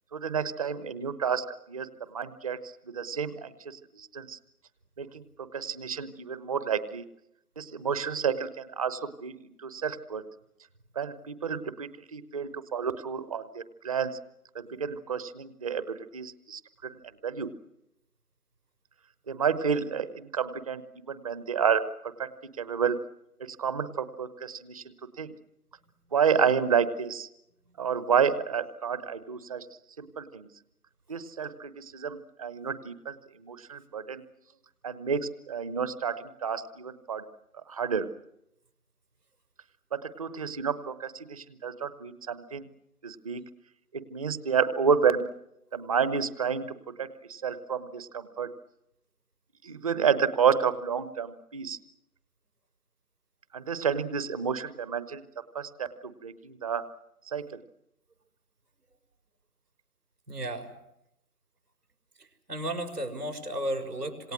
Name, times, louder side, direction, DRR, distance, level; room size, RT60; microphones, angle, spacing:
voice 1, 0.1-1.9 2.1-2.6 2.9-4.4 5.0-7.0 7.6-10.2 10.9-14.2 14.5-17.0 17.2-17.5 19.3-20.8 21.1-21.8 22.2-22.3 22.6-23.0 23.6-24.8 25.2-25.3 26.1-27.3 27.8-29.7 30.0-30.5 31.1-33.2 33.4-34.2 34.8-37.2 37.7-38.1 39.9-42.6 43.0-43.4 43.9-45.2 45.7-48.5 49.6-51.8 53.5-55.2 55.5-56.9 57.3-57.6, right 6 dB, 25° right, 14 dB, 1.1 m, -30 dB
voice 2, 60.3-60.7 62.5-64.3, right 1 dB, 80° right, 3 dB, 6.1 m, -33 dB
27.5 x 26.5 x 6.2 m, 0.81 s
figure-of-eight pair, 150°, 46 cm